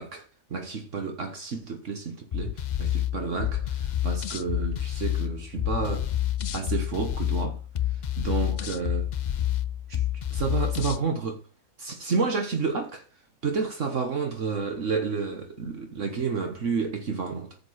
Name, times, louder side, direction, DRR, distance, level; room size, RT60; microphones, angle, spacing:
voice 1, 0.0-6.1 6.5-7.6 8.2-9.1 9.9-10.0 10.3-11.4 11.8-13.0 13.4-17.6, right 5 dB, 60° right, 1.6 m, -30 dB
sound 1, 2.3-11.0, left 11 dB, 50° left, 0.5 m, -28 dB
10.5 x 6.7 x 5.0 m
omnidirectional pair, 1.4 m